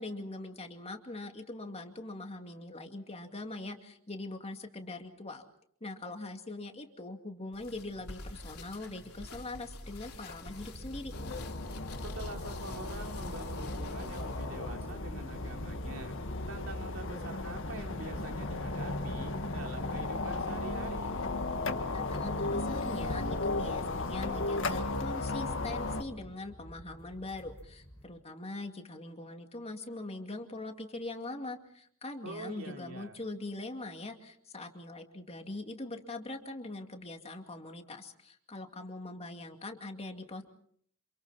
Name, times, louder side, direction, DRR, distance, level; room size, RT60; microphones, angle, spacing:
voice 1, 0.0-5.4 5.8-11.1 21.9-40.4, left 2 dB, 30° left, 4 dB, 2.4 m, -42 dB
sound 1, 7.5-14.6, left 1 dB, 80° left, 3.7 m, -46 dB
sound 2, 10.4-28.0, equal, 10° left, 4.4 m, -52 dB
sound 3, 11.1-26.0, left 2 dB, 60° left, 1.9 m, -35 dB
voice 2, 12.0-16.2 16.5-21.1 32.2-33.2, right 2 dB, 70° right, 3 dB, 3.1 m, -45 dB
29.0 x 27.5 x 4.2 m, 0.63 s
head